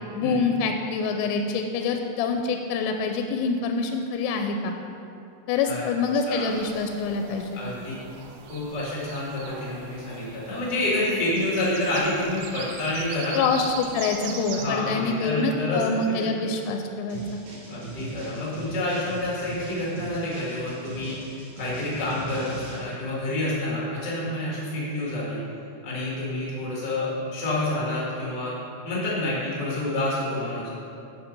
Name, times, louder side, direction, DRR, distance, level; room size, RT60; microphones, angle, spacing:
voice 1, 0.2-4.7 5.5-7.6 13.3-17.4, left 4 dB, 85° left, 4 dB, 3.1 m, -26 dB
sound 1, 6.5-14.7, right 6 dB, 90° right, 3.3 m, -41 dB
voice 2, 7.5-7.9 8.4-13.4 14.5-16.3 17.7-25.4 25.8-28.5 28.8-30.7, left 1 dB, 60° left, -7 dB, 1.1 m, -28 dB
sound 2, 17.1-22.8, right 2 dB, 55° right, 2.2 m, -40 dB
8.8 x 7.4 x 5.2 m, 2.7 s
omnidirectional pair, 5.7 m